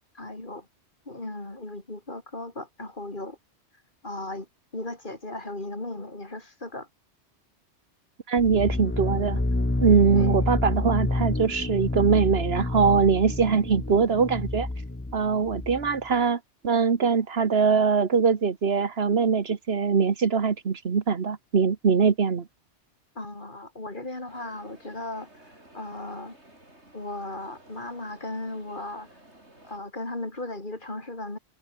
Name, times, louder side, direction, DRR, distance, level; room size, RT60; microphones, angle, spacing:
voice 1, 0.1-0.7 1.1-3.4 4.0-4.5 4.7-6.9 10.1-10.4 23.2-25.3 25.7-26.4 26.9-29.1 29.6-31.4, left 2 dB, 50° left, 4.0 m, -36 dB
voice 2, 8.3-9.4 9.8-14.7 15.1-22.5, right 5 dB, 65° right, 1.5 m, -22 dB
sound 1, 8.4-16.0, left 2 dB, 10° left, 0.8 m, -28 dB
sound 2, 24.3-29.8, right 1 dB, 85° right, 8.3 m, -54 dB
omnidirectional pair, 1.1 m